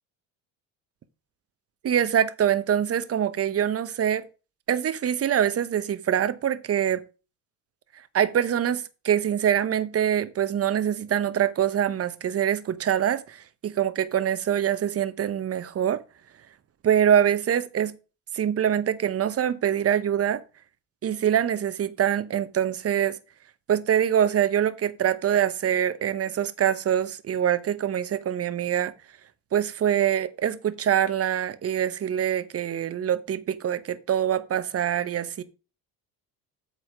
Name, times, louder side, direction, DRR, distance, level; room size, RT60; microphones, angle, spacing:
voice 1, 1.8-4.3 4.7-7.0 8.1-16.0 16.8-17.9 18.3-20.4 21.0-23.2 23.7-28.9 29.5-35.4, right 9 dB, 35° right, 0.9 m, -24 dB
8.0 x 4.2 x 6.2 m
supercardioid pair, 90°, 42 cm